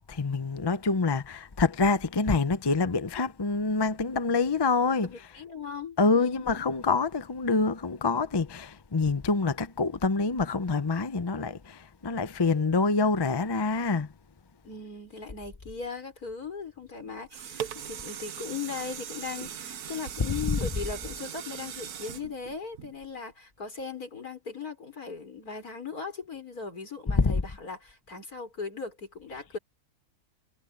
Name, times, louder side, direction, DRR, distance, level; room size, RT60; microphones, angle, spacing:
voice 1, 0.1-5.1 6.0-14.1 27.2-27.3, left 4 dB, 25° left, 0.5 m, -26 dB
voice 2, 5.1-6.6 14.6-29.6, left 5 dB, 75° left, 5.8 m, -38 dB
sound 1, 17.0-23.3 23.8-23.9, right 9 dB, 85° right, 1.5 m, -40 dB
omnidirectional pair, 1.6 m